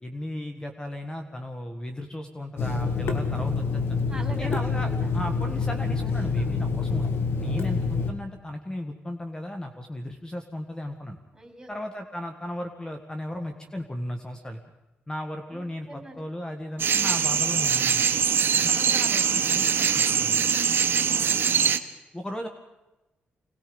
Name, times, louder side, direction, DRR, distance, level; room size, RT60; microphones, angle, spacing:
voice 1, 0.0-4.0 4.4-7.1 7.4-11.2 11.7-14.6 15.1-18.0 18.6-20.5 22.1-22.5, left 1 dB, 20° left, 5 dB, 1.7 m, -36 dB
Water tap faucet / Sink (filling or washing), 2.6-8.1, left 4 dB, 70° left, 2.1 m, -27 dB
voice 2, 4.1-5.1 6.0-6.5 11.3-11.7 15.5-16.2 18.3-18.6 21.1-21.5, right 1 dB, 10° right, 2 dB, 5.6 m, -44 dB
sound 1, 16.8-21.8, right 7 dB, 60° right, 1.2 m, -23 dB
26.0 x 19.0 x 5.4 m, 1.0 s
cardioid pair, 85°, 4 cm